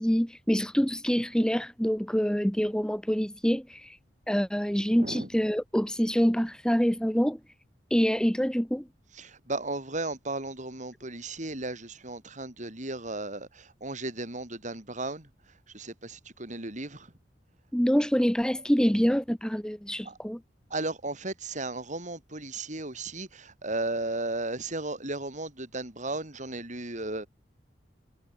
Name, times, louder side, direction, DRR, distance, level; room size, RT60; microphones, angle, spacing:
voice 1, 0.0-4.0 4.3-7.4 7.9-8.9 17.7-20.4, equal, 5° left, 1.1 m, -26 dB
voice 2, 4.9-5.3 9.1-15.3 15.7-17.1 18.6-18.7 20.0-20.2 20.7-27.3, right 2 dB, 45° right, 7.1 m, -35 dB
head